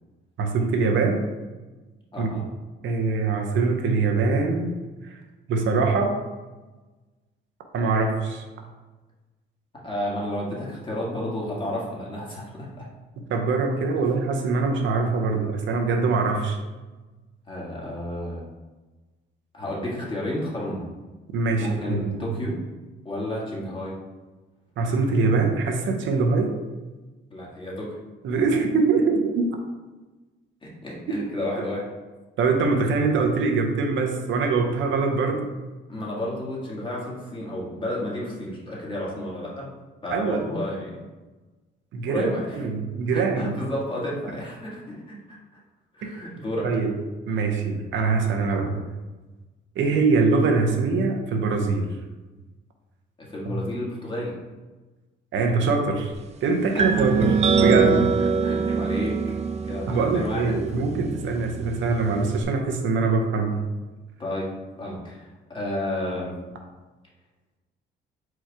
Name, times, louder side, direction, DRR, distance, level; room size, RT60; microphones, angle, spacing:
voice 1, 0.4-1.2 2.2-2.3 2.8-4.7 5.0-5.2 5.5-6.2 7.7-8.4 13.3-16.6 21.3-22.3 24.8-26.5 28.2-29.6 32.4-35.4 40.1-40.4 41.9-43.6 46.3-46.9 47.3-48.8 49.8-51.9 53.5-53.6 55.3-56.1 56.4-58.1 59.9-63.6, right 4 dB, 75° right, 3 dB, 0.7 m, -23 dB
voice 2, 2.1-2.5 9.8-12.9 17.5-18.4 19.5-20.9 21.6-22.6 23.0-24.0 27.3-28.0 30.6-31.8 35.9-39.7 40.0-41.0 42.1-42.6 43.1-45.2 45.9-46.8 53.2-54.4 56.7-57.1 58.2-59.2 59.6-60.6 64.2-66.4, left 1 dB, 25° left, -4 dB, 1.5 m, -31 dB
sound 1, 56.8-62.4, right 5 dB, 35° right, 0.4 m, -24 dB
4.6 x 2.3 x 4.6 m, 1.2 s
cardioid pair, 90°, 20 cm